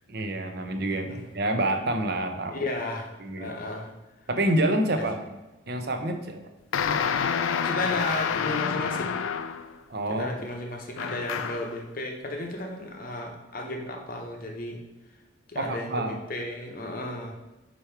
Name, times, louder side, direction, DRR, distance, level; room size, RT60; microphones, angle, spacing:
voice 1, 0.1-2.6 3.2-3.5 4.3-5.2 5.7-6.4 9.9-10.3 15.6-16.2, right 1 dB, 55° right, 6 dB, 0.7 m, -27 dB
voice 2, 2.5-3.9 4.9-5.1 7.6-9.2 10.1-14.8 15.5-17.4, left 2 dB, 45° left, 2 dB, 0.8 m, -34 dB
sound 1, 6.7-9.8 11.0-11.8, left 7 dB, 90° left, 0.4 m, -28 dB
5.3 x 4.5 x 4.4 m, 1.0 s
head